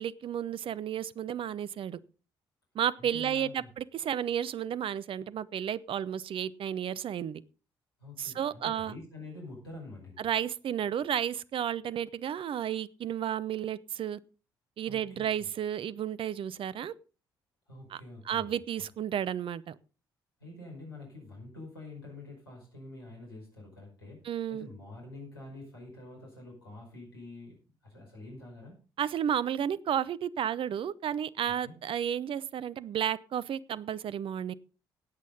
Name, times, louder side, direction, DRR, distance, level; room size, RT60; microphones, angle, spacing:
voice 1, 0.0-2.0 2.7-7.4 8.2-8.9 10.2-14.2 14.8-16.9 17.9-18.0 18.3-19.8 24.2-24.7 29.0-34.5, right 9 dB, 45° right, 19 dB, 0.7 m, -32 dB
voice 2, 3.0-3.7 8.0-10.2 14.8-15.5 17.7-18.5 20.4-27.5 27.8-28.8 31.5-31.7, left 2 dB, 85° left, -2 dB, 5.1 m, -47 dB
17.0 x 8.4 x 3.8 m, 0.35 s
figure-of-eight pair, 45°, 12 cm